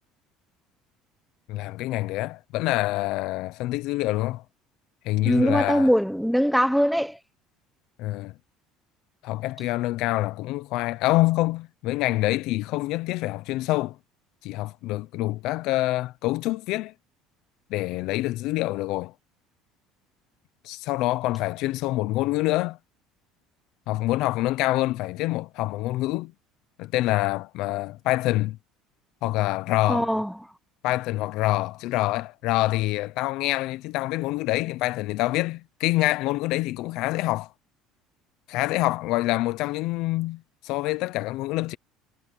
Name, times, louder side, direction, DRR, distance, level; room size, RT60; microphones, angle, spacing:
voice 1, 1.5-4.4 5.0-5.9 8.0-8.3 9.2-14.0 14.4-16.9 17.7-19.1 20.6-22.8 23.9-26.3 26.8-28.6 29.2-30.1 30.8-37.5 38.5-41.8, left 18 dB, 65° left, 0.7 m, -26 dB
voice 2, 5.2-7.2 29.9-30.3, equal, ahead, 1.1 m, -21 dB
cardioid pair, 145°, 0 cm